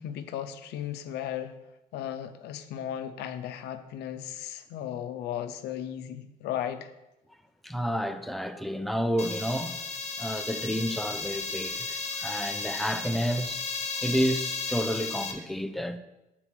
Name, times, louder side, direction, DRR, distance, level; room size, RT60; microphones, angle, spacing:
voice 1, 0.0-1.6 1.9-6.9, left 10 dB, 80° left, 0.6 m, -35 dB
voice 2, 7.6-9.8 10.2-11.8 12.1-13.6 14.0-16.0, equal, ahead, 0.4 m, -30 dB
sound 1, 9.2-15.3, left 4 dB, 40° left, 0.9 m, -34 dB
5.8 x 4.0 x 6.1 m
cardioid pair, 110°, 17 cm